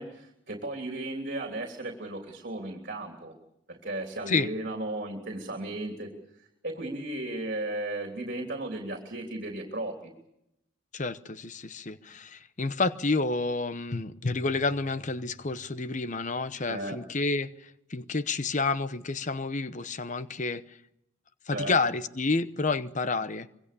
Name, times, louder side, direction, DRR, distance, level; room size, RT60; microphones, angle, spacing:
voice 1, 0.0-3.3 3.7-6.1 6.6-10.1 16.7-17.0 21.5-21.7, right 1 dB, 45° right, 3.3 m, -35 dB
voice 2, 10.9-20.8 21.5-23.5, left 3 dB, 35° left, 0.9 m, -29 dB
25.5 x 22.5 x 6.9 m
head